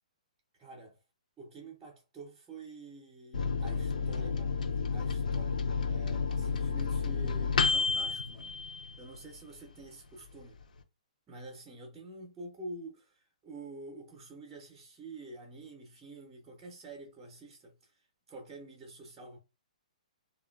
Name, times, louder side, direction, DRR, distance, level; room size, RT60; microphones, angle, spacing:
voice 1, 0.6-1.0 1.4-8.6 9.0-10.6 11.3-17.9 18.3-19.4, right 2 dB, 10° right, 0.4 m, -48 dB
Microwave oven, 3.3-9.4 9.8-9.9 10.2-10.8, left 5 dB, 85° left, 0.5 m, -31 dB
3.0 x 2.1 x 2.2 m
hypercardioid pair, 170°, 4 cm